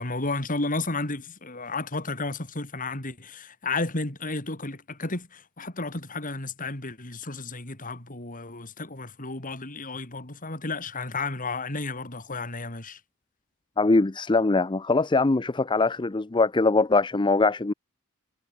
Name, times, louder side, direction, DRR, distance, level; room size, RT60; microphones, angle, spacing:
voice 1, 0.0-13.0, left 3 dB, 40° left, 3.7 m, -32 dB
voice 2, 13.8-17.7, left 3 dB, 20° left, 0.5 m, -22 dB
head